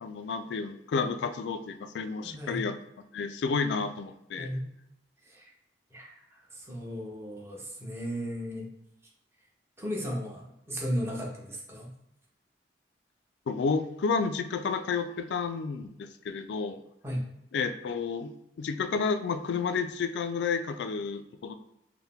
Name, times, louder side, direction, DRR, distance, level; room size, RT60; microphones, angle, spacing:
voice 1, 0.0-2.7 3.1-4.5 13.5-16.8 17.5-18.3 18.6-21.5, left 5 dB, 75° left, 9 dB, 0.3 m, -31 dB
voice 2, 2.2-2.6 4.4-4.6 5.2-5.5 5.9-8.7 9.8-11.9 17.0-17.3, equal, 15° right, -3 dB, 0.8 m, -35 dB
4.5 x 2.1 x 3.5 m, 0.85 s
head